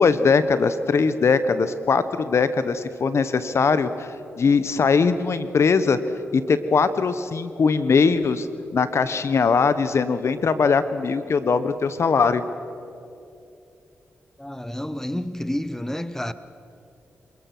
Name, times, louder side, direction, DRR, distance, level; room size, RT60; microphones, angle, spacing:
voice 1, 0.0-6.0 6.3-8.5 8.7-12.4, left 5 dB, 60° left, 1.1 m, -21 dB
voice 2, 14.4-16.3, left 1 dB, 10° left, 1.1 m, -29 dB
27.0 x 20.0 x 6.2 m
supercardioid pair, 50°, 5 cm